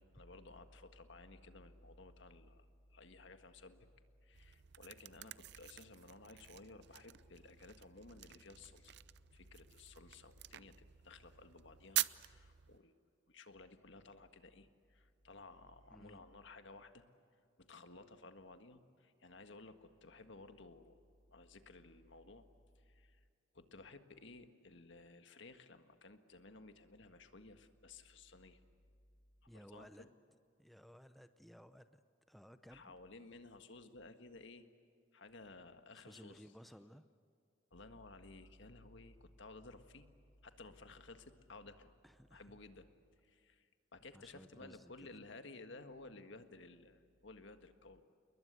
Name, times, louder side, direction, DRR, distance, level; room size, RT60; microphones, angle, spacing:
voice 1, 0.0-3.9 4.2-8.9 9.3-12.9 13.3-17.0 17.6-21.0 21.3-22.4 22.7-23.3 23.5-28.6 29.4-30.1 32.7-34.7 35.1-36.5 37.7-40.0 40.4-41.9 42.3-42.9 43.2-48.0, left 3 dB, 60° left, 8 dB, 1.7 m, -56 dB
sound 1, 4.3-12.8, right 15 dB, 55° right, 0.6 m, -46 dB
voice 2, 15.9-16.3 29.5-30.1 30.6-32.9 35.9-37.1 42.0-42.6 44.1-45.1, equal, ahead, 10 dB, 0.6 m, -58 dB
29.0 x 21.5 x 8.2 m, 2.4 s
head